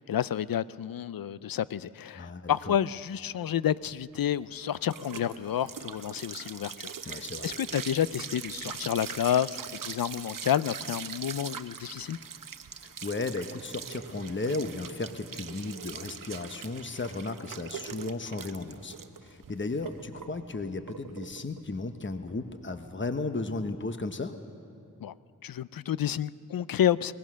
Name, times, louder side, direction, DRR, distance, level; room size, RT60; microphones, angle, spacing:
voice 1, 0.0-12.2 25.0-25.1 25.4-27.1, left 10 dB, 75° left, 18 dB, 0.5 m, -30 dB
voice 2, 2.1-2.7 7.1-7.5 12.8-19.0 19.2-24.3, left 3 dB, 35° left, 8 dB, 1.1 m, -35 dB
sound 1, 3.9-22.9, right 7 dB, 70° right, 0.8 m, -42 dB
21.0 x 19.0 x 6.3 m, 2.8 s
cardioid pair, 40°, 35 cm